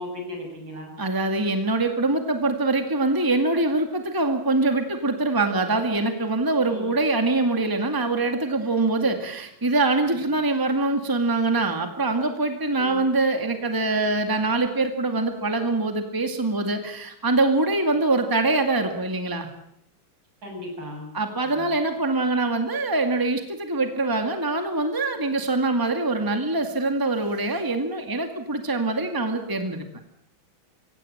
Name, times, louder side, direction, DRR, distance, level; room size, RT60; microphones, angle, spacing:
voice 1, 0.0-0.9 6.7-7.0 12.7-13.0 20.4-21.1 21.5-21.7, left 1 dB, 65° right, 1 dB, 8.0 m, -36 dB
voice 2, 1.0-19.5 21.1-29.9, right 2 dB, 10° right, 5 dB, 2.1 m, -24 dB
24.5 x 17.0 x 8.7 m, 0.75 s
omnidirectional pair, 2.2 m